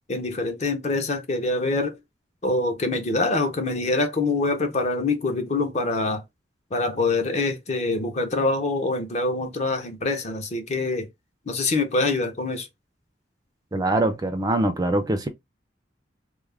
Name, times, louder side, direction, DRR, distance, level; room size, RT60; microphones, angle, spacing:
voice 1, 0.1-1.9 2.4-6.2 6.7-11.1 11.5-12.7, left 3 dB, 40° left, 0.6 m, -25 dB
voice 2, 13.7-15.3, right 2 dB, 20° right, 0.3 m, -23 dB
2.3 x 2.0 x 3.2 m
head